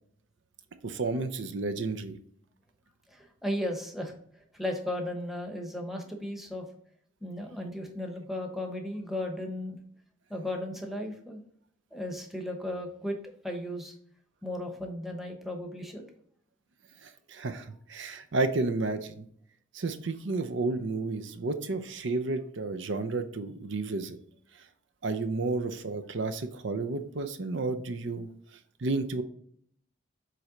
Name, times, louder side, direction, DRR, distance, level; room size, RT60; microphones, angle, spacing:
voice 1, 0.8-2.2 17.0-19.3 19.7-24.2 25.0-28.3 28.8-29.2, right 3 dB, 70° right, 9 dB, 0.6 m, -31 dB
voice 2, 3.1-4.1 4.5-6.7 7.2-9.8 10.3-11.4 11.9-13.2 13.4-13.9 14.4-16.0, left 1 dB, ahead, 2 dB, 0.9 m, -35 dB
7.5 x 3.3 x 3.9 m, 0.65 s
head